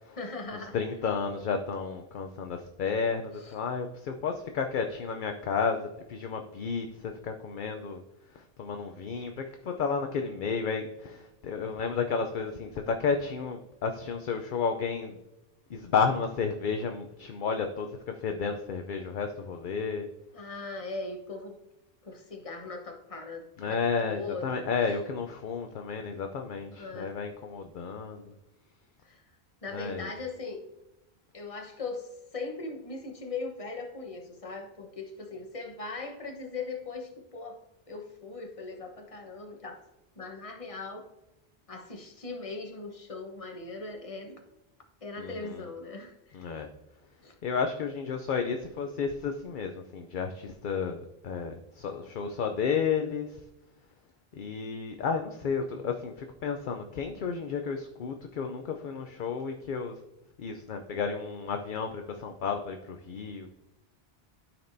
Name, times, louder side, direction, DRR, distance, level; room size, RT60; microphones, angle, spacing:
voice 1, 0.2-0.8 3.3-3.5 20.3-21.6 22.0-24.6 26.7-27.1 29.0-29.2 29.6-30.6 31.3-37.6 37.9-39.8 40.2-41.0 41.7-44.4 45.0-46.4 47.2-47.3, left 3 dB, 35° left, 3 dB, 1.1 m, -39 dB
voice 2, 0.7-8.0 8.4-15.2 15.7-20.1 23.6-28.2 29.7-30.1 45.2-45.6 46.3-46.7 47.4-53.4 54.3-60.0 60.4-63.5, left 5 dB, 60° left, 5 dB, 0.7 m, -32 dB
12.5 x 4.4 x 2.6 m, 0.94 s
omnidirectional pair, 1.0 m